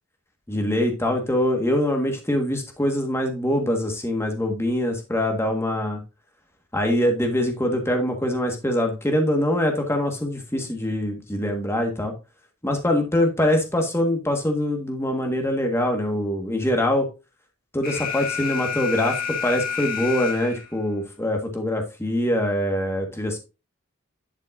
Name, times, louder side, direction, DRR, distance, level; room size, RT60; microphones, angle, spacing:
voice 1, 0.5-6.0 6.7-12.1 12.6-17.1 17.7-23.4, left 1 dB, 10° left, 3 dB, 1.6 m, -24 dB
Alarm, 17.8-20.8, left 7 dB, 40° left, 2.1 m, -29 dB
11.0 x 5.6 x 2.6 m, 0.28 s
head